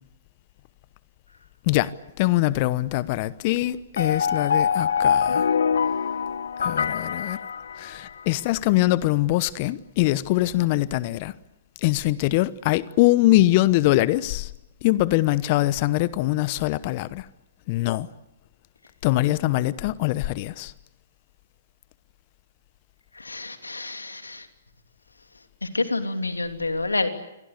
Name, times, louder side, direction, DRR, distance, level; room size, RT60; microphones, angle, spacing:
voice 1, 2.2-5.5 6.6-7.4 7.8-11.3 11.8-14.5 14.8-17.3 17.7-18.1 19.0-20.7, left 17 dB, 40° left, 1.0 m, -23 dB
sound 1, 4.0-8.3, left 7 dB, 70° left, 1.0 m, -24 dB
voice 2, 23.1-24.5 25.6-27.1, left 3 dB, 85° left, 2.9 m, -28 dB
28.0 x 23.0 x 8.3 m
figure-of-eight pair, 120°, 0 cm